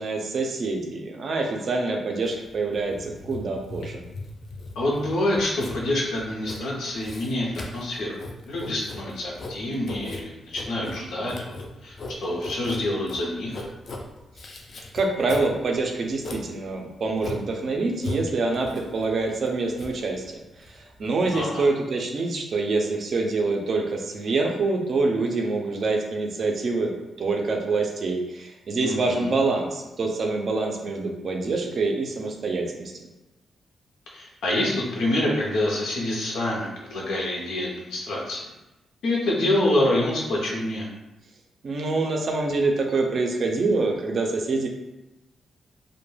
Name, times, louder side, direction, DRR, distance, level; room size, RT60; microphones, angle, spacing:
voice 1, 0.0-4.0 14.9-26.9 27.2-32.9 41.6-44.7, right 3 dB, 40° right, 2 dB, 0.4 m, -26 dB
Writing, 2.2-21.4, left 2 dB, 45° left, 0.3 m, -38 dB
voice 2, 4.8-8.2 8.5-11.5 11.8-13.7 21.3-21.7 28.8-29.4 34.1-38.5 39.0-40.9, left 1 dB, 90° left, -3 dB, 0.6 m, -26 dB
2.2 x 2.1 x 3.1 m, 0.99 s
wide cardioid pair, 170°, 0 cm